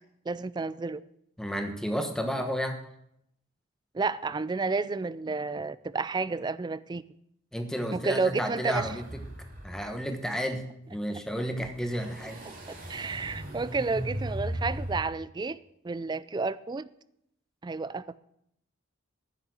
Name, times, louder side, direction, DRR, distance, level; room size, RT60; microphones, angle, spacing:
voice 1, 0.3-1.0 3.9-7.0 7.9-9.0 12.7-15.6 15.8-16.9 17.6-18.2, right 4 dB, 20° right, 17 dB, 0.3 m, -31 dB
voice 2, 1.4-2.8 7.5-9.0 9.6-10.6 10.9-12.4, equal, 5° left, 5 dB, 1.2 m, -31 dB
sound 1, 8.7-9.9 10.2-10.3 11.6-15.0, equal, 45° right, 2.6 m, -37 dB
10.0 x 7.2 x 8.0 m, 0.77 s
head